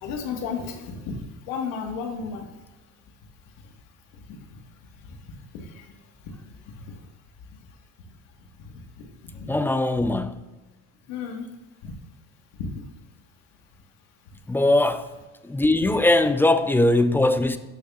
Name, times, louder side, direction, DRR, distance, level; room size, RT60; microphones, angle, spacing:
voice 1, 0.0-2.5 4.5-4.6 5.5-5.8 6.9-7.0 9.4-9.6 11.1-11.4 11.8-11.9 12.6-12.8, left 5 dB, 85° left, 1.5 m, -33 dB
voice 2, 9.5-10.5 14.5-15.1 15.4-17.6, left 2 dB, 5° left, 0.4 m, -20 dB
11.5 x 6.9 x 2.4 m
supercardioid pair, 105°, 35 cm